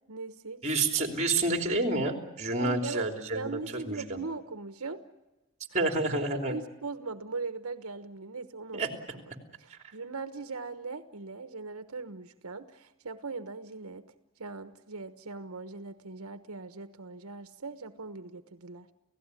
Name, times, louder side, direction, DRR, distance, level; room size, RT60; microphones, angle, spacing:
voice 1, 0.1-0.7 2.6-5.0 6.3-8.8 9.1-9.2 9.6-14.1 14.4-18.9, right 4 dB, 85° right, 11 dB, 1.2 m, -40 dB
voice 2, 0.6-3.6 3.8-4.2 5.7-6.5 8.7-8.9 9.7-9.8, right 2 dB, 30° right, 6 dB, 3.3 m, -29 dB
30.0 x 16.5 x 9.8 m, 1.0 s
head